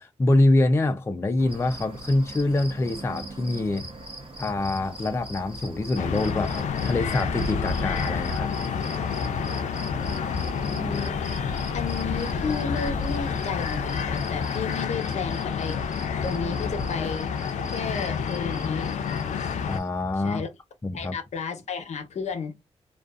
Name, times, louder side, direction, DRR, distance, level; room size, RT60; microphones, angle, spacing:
voice 1, 0.0-3.9 4.4-8.5 19.6-20.4 20.8-21.2, left 2 dB, 20° left, 0.4 m, -25 dB
sound 1, 1.4-14.8, right 2 dB, 55° right, 0.7 m, -43 dB
sound 2, 1.5-19.9, equal, 10° right, 0.9 m, -45 dB
sound 3, 6.0-19.8, left 6 dB, 85° left, 0.4 m, -29 dB
voice 2, 10.6-11.3 11.7-17.3 17.7-19.2 20.2-20.5 20.9-22.5, left 5 dB, 70° left, 0.8 m, -33 dB
2.4 x 2.3 x 2.3 m
wide cardioid pair, 105°, 12 cm